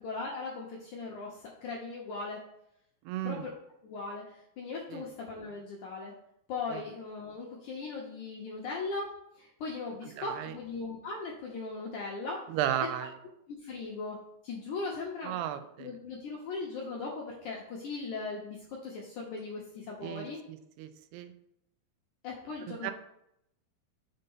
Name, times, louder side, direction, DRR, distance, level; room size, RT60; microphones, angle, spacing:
voice 1, 0.0-2.4 3.2-3.5 3.8-6.1 6.5-12.4 13.5-14.2 14.4-15.4 15.8-20.4 22.2-22.9, left 3 dB, 75° left, -2 dB, 1.8 m, -38 dB
voice 2, 3.1-3.5 4.9-5.1 6.7-6.8 10.0-10.5 12.5-13.1 15.2-15.9 20.0-21.3 22.8-22.9, right 11 dB, 85° right, 10 dB, 2.6 m, -35 dB
6.6 x 3.9 x 5.4 m, 0.77 s
omnidirectional pair, 4.6 m